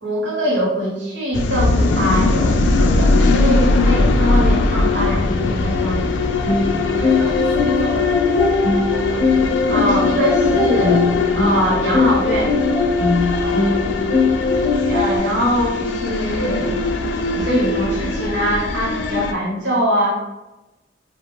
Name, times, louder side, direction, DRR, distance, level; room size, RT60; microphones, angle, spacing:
voice 1, 0.0-6.1 9.7-11.1 11.3-12.6 14.9-16.8 17.3-20.1, equal, 90° right, -3 dB, 0.9 m, -22 dB
sound 1, 1.3-19.3, left 3 dB, 80° left, 0.3 m, -20 dB
sound 2, 6.5-15.2, left 3 dB, 40° left, 0.6 m, -20 dB
voice 2, 6.9-9.4 13.4-13.9, right 1 dB, 60° right, -5 dB, 0.4 m, -33 dB
2.5 x 2.0 x 3.0 m, 1.0 s
head